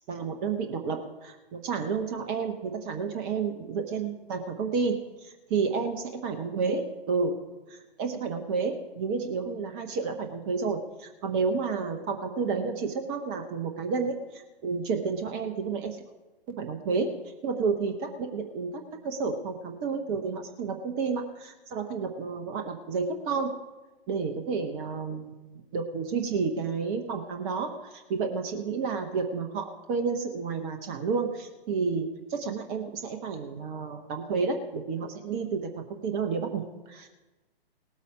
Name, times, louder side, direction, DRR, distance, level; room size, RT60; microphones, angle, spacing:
voice 1, 0.1-6.0 6.2-7.4 7.7-16.0 16.5-17.1 17.4-23.5 24.1-37.1, right 5 dB, 20° right, 5 dB, 0.9 m, -31 dB
18.0 x 8.3 x 5.0 m, 1.1 s
figure-of-eight pair, 125°, 31 cm